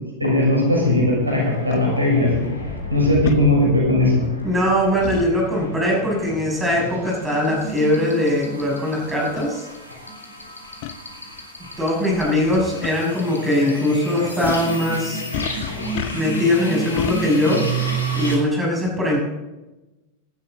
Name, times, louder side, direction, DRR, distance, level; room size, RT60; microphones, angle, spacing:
voice 1, 0.2-2.3 2.9-4.2, left 1 dB, 80° right, -2 dB, 6.4 m, -18 dB
sound 1, 0.8-18.4, right 2 dB, 80° left, 3.4 m, -31 dB
sound 2, 1.7-1.8 3.2-3.4 5.0-5.3 7.1-7.3 8.1-8.2 9.0-9.1 9.4-9.5 10.8-11.0 12.3-12.5 12.8-12.9 14.4-14.7 15.3-16.4 17.0-17.2, left 10 dB, 45° left, 0.8 m, -29 dB
voice 2, 4.4-9.7 11.8-15.2 16.1-17.6 18.1-19.2, left 1 dB, 10° right, -2 dB, 6.6 m, -21 dB
19.0 x 12.0 x 4.0 m, 1.0 s
figure-of-eight pair, 90°, 0 cm